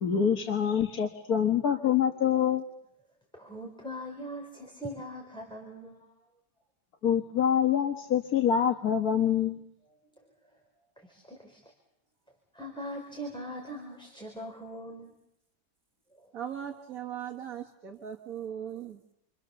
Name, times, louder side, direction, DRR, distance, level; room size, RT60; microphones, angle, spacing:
voice 1, 0.0-2.6 7.0-9.6, left 8 dB, 60° left, 4 dB, 2.0 m, -25 dB
voice 2, 3.3-6.1 11.0-11.6 12.5-15.1 16.2-16.3, equal, 5° left, 0 dB, 4.2 m, -41 dB
voice 3, 16.3-19.0, right 9 dB, 55° right, 1 dB, 2.1 m, -39 dB
29.5 x 26.0 x 6.9 m, 0.78 s
omnidirectional pair, 1.8 m